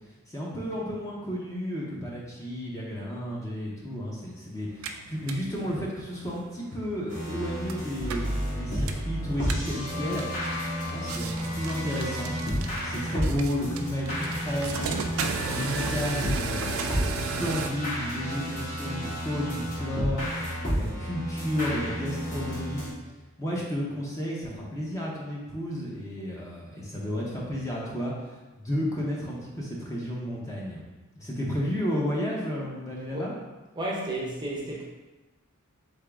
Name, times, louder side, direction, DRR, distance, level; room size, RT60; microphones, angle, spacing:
voice 1, 0.3-10.2 10.9-14.8 15.2-20.3 20.7-22.9 23.4-30.8 31.2-33.3, equal, 15° left, -4 dB, 0.7 m, -32 dB
sound 1, 4.6-17.7, right 4 dB, 70° right, 0.4 m, -36 dB
sound 2, 7.1-22.9, equal, 35° left, 1.4 m, -32 dB
voice 2, 33.8-34.8, right 1 dB, 20° right, -4 dB, 0.6 m, -32 dB
3.8 x 3.6 x 3.5 m, 1.1 s
head